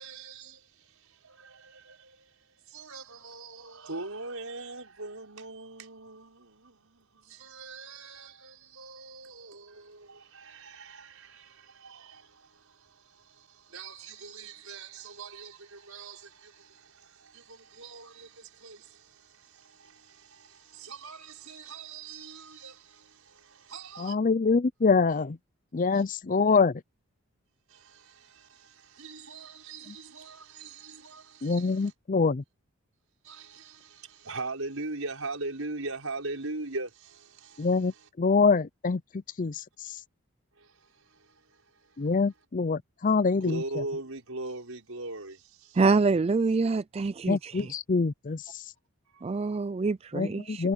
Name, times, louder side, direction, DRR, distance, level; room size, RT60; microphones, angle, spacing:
voice 1, 0.0-24.2 25.9-26.1 27.7-31.9 33.2-38.1 40.6-42.1 43.4-45.8 47.6-47.7 49.1-49.4, right 3 dB, 75° right, 5.7 m, -42 dB
voice 2, 24.0-25.4 25.7-26.8 31.4-32.4 37.6-39.0 39.4-39.9 42.0-43.6 47.3-48.6 50.1-50.7, left 4 dB, 35° left, 0.5 m, -25 dB
voice 3, 45.8-47.7 49.2-50.7, right 4 dB, 30° right, 0.3 m, -26 dB
head